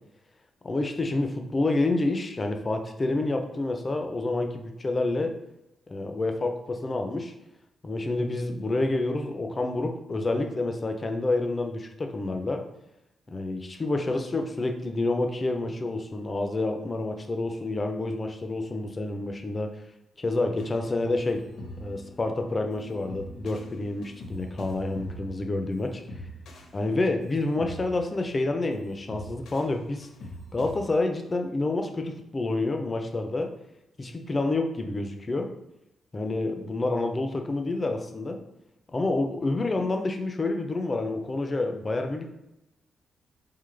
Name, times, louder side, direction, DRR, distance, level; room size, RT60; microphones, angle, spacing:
voice 1, 0.6-5.3 5.9-7.3 7.8-12.6 13.3-19.7 20.2-21.4 21.8-26.0 26.7-30.1 30.5-33.5 34.0-35.5 36.1-38.4 38.9-42.3, left 2 dB, 20° left, 4 dB, 0.4 m, -28 dB
sound 1, 20.6-30.8, equal, 80° left, 0.8 m, -44 dB
3.8 x 3.8 x 3.2 m, 0.90 s
wide cardioid pair, 175°, 0 cm